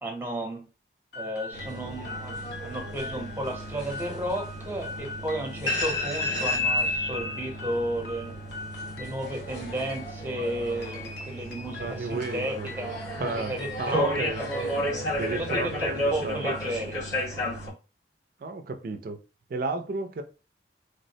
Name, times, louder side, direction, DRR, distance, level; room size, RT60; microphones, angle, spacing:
voice 1, 0.0-0.6 1.2-8.3 9.0-14.7 15.3-17.0, right 1 dB, 10° right, 0.6 m, -33 dB
sound 1, 1.1-15.6, left 3 dB, 60° left, 0.6 m, -43 dB
sound 2, 1.5-17.7, left 1 dB, 90° left, 1.6 m, -32 dB
voice 2, 11.8-12.7 13.2-14.4 15.2-16.4 18.4-19.2 19.5-20.2, right 3 dB, 50° right, 0.3 m, -33 dB
3.3 x 2.1 x 2.6 m
head